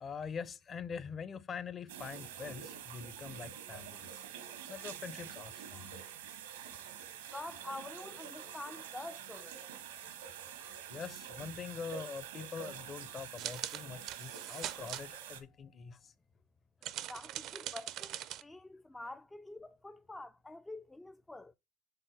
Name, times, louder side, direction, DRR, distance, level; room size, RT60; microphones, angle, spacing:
voice 1, 0.0-4.2 4.7-6.1 6.7-6.8 10.4-16.1, left 6 dB, 35° left, 0.7 m, -44 dB
sound 1, 1.9-15.4, right 9 dB, 80° right, 1.2 m, -47 dB
voice 2, 7.3-9.6 16.8-21.5, left 2 dB, 10° left, 0.4 m, -47 dB
sound 2, 13.4-15.0 16.8-18.4, right 12 dB, 55° right, 0.6 m, -41 dB
7.0 x 3.8 x 5.8 m
hypercardioid pair, 90°, 0 cm